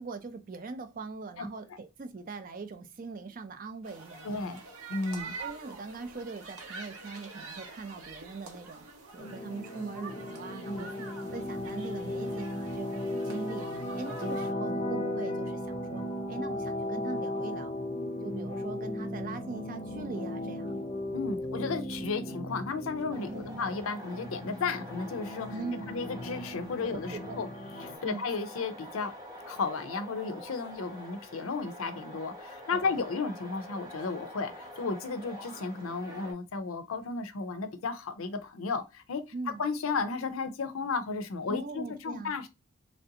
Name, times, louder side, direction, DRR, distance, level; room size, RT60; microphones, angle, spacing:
voice 1, 0.0-4.3 5.4-8.9 9.1-13.7 13.9-17.7 18.2-20.8 23.3-23.7 25.5-26.0 26.8-27.5 28.0-28.2 32.7-33.0 39.3-39.6 41.5-42.3, right 3 dB, 40° right, 0.4 m, -41 dB
voice 2, 1.4-1.8 4.2-4.6 4.9-5.3 10.6-10.9 21.1-25.5 25.9-27.5 27.8-29.1 29.5-39.2 39.6-42.5, left 4 dB, 75° left, 0.5 m, -34 dB
sound 1, 3.8-14.5, right 4 dB, 85° right, 0.8 m, -46 dB
sound 2, 9.2-28.0, left 1 dB, 25° left, 0.4 m, -36 dB
sound 3, 23.1-36.3, left 1 dB, 20° right, 0.8 m, -46 dB
3.2 x 2.6 x 2.7 m
head